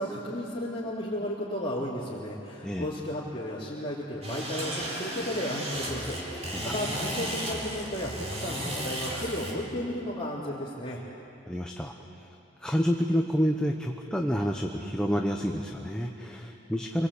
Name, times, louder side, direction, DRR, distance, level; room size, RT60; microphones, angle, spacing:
voice 1, 0.0-11.0, equal, 25° left, -8 dB, 3.3 m, -34 dB
sound 1, 4.2-9.5, right 1 dB, 35° right, 4.4 m, -34 dB
voice 2, 11.5-11.9 12.6-17.1, equal, 5° left, 1 dB, 1.0 m, -28 dB
29.5 x 22.0 x 8.5 m, 3.0 s
head